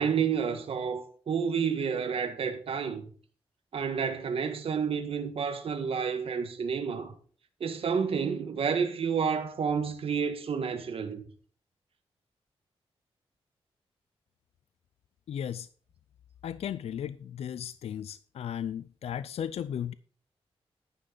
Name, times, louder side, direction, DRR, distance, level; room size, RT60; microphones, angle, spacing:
voice 1, 0.0-3.0 3.7-7.1 7.6-11.2, right 6 dB, 65° right, 1.6 m, -30 dB
voice 2, 15.3-15.7 16.4-19.9, left 9 dB, 80° left, 0.4 m, -35 dB
10.5 x 9.5 x 4.0 m
wide cardioid pair, 110°, 10 cm